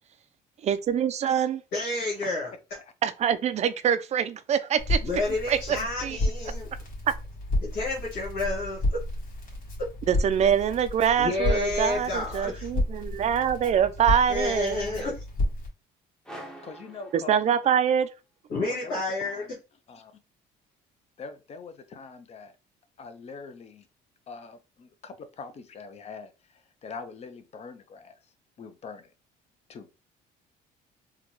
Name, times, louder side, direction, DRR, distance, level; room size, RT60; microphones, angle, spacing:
voice 1, 0.6-1.6 3.0-5.0 5.5-6.2 7.1-7.2 10.1-15.1 17.1-18.1, right 8 dB, 40° right, 0.4 m, -25 dB
voice 2, 1.7-2.5 5.0-6.7 7.7-8.8 9.8-9.9 11.2-12.7 14.3-15.2 18.5-19.4, left 2 dB, 75° left, 1.5 m, -30 dB
Crackle, 4.8-15.7, left 1 dB, 55° left, 1.7 m, -31 dB
sound 1, 16.2-18.0, right 1 dB, 5° left, 0.7 m, -45 dB
voice 3, 16.6-17.4 18.7-19.6 19.9-20.1 21.2-22.6 23.0-23.9 24.3-28.3 28.6-29.1 29.7-29.9, left 4 dB, 40° left, 0.6 m, -43 dB
3.8 x 2.2 x 3.0 m
cardioid pair, 110°, 17 cm